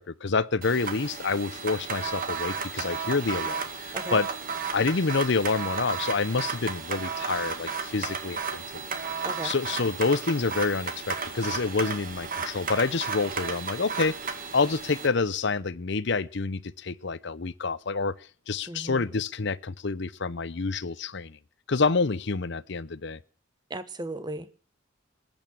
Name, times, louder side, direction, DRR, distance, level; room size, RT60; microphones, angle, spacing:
voice 1, 0.0-4.3 4.7-8.9 9.4-14.2 14.5-18.1 18.5-21.4 21.7-23.2, left 4 dB, 60° left, 17 dB, 0.7 m, -28 dB
sound 1, 0.6-15.1, right 5 dB, 45° right, 2.1 m, -33 dB
voice 2, 18.7-19.0 23.7-24.5, right 1 dB, 20° right, 13 dB, 1.1 m, -36 dB
20.5 x 8.9 x 7.4 m, 0.40 s
head